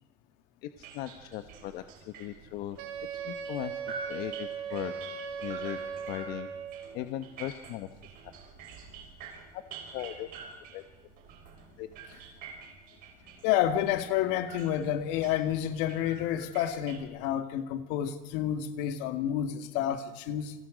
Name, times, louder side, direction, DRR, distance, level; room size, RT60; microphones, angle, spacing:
voice 1, 0.6-2.8 3.2-4.9 5.4-5.8 6.1-6.5 6.9-7.9 9.5-9.6 9.9-10.3 10.7-10.8 11.8-11.9, left 13 dB, 60° left, 1.1 m, -38 dB
sound 1, 0.8-17.0, right 5 dB, 50° right, 5.4 m, -48 dB
Wind instrument woodwind instrument, 2.8-6.9, right 6 dB, 85° right, 2.7 m, -38 dB
voice 2, 13.4-20.5, left 11 dB, 75° left, 2.0 m, -29 dB
29.5 x 26.5 x 5.1 m
cardioid pair, 170°, 18 cm